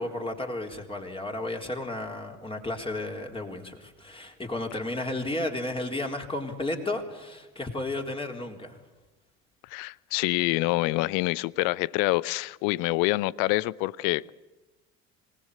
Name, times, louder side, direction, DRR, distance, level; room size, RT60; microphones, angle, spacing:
voice 1, 0.0-8.8, left 2 dB, 15° left, 4.0 m, -33 dB
voice 2, 9.7-14.3, left 20 dB, 50° left, 0.7 m, -26 dB
26.5 x 18.5 x 8.4 m
figure-of-eight pair, 65°, 40 cm